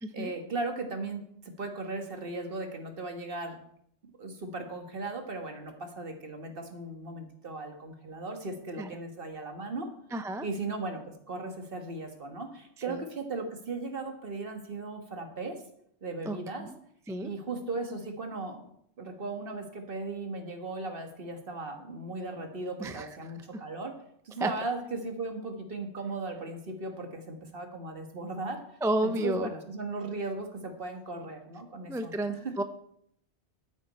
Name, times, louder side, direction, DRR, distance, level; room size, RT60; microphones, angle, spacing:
voice 1, 0.1-3.6 4.2-9.9 10.4-11.0 11.3-15.6 16.0-16.7 17.2-18.6 19.0-23.9 24.3-28.6 29.0-32.6, right 3 dB, 50° right, 5 dB, 1.7 m, -37 dB
voice 2, 10.1-10.5 12.9-13.0 16.3-16.8 17.1-17.3 22.8-23.1 24.4-24.5 28.8-29.5 31.9-32.6, right 1 dB, 5° right, 9 dB, 0.3 m, -31 dB
12.5 x 8.8 x 4.3 m, 0.70 s
omnidirectional pair, 1.2 m